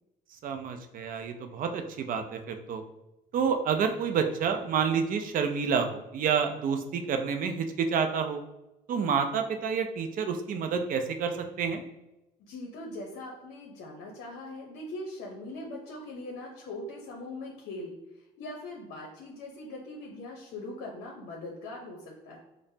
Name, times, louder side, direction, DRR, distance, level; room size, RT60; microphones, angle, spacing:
voice 1, 0.4-2.8 3.3-8.4 8.9-11.8, right 6 dB, 55° right, 6 dB, 0.5 m, -29 dB
voice 2, 12.4-22.4, left 2 dB, 80° left, -1 dB, 0.7 m, -41 dB
5.2 x 2.0 x 2.7 m, 0.94 s
cardioid pair, 110°, 17 cm